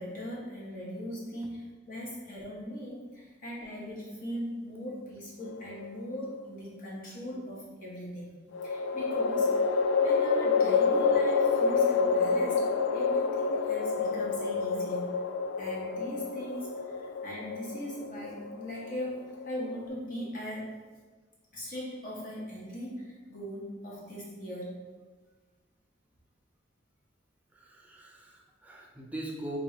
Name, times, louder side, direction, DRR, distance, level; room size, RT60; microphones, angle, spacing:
voice 1, 0.0-8.3 8.6-9.8 10.0-15.1 15.6-20.7 21.5-24.8, equal, 45° left, -5 dB, 1.3 m, -39 dB
sound 1, 5.5-6.3 8.5-19.8, left 5 dB, 80° left, 0.3 m, -28 dB
voice 2, 27.5-29.6, right 1 dB, 10° right, -1 dB, 0.5 m, -41 dB
3.6 x 3.1 x 4.8 m, 1.3 s
head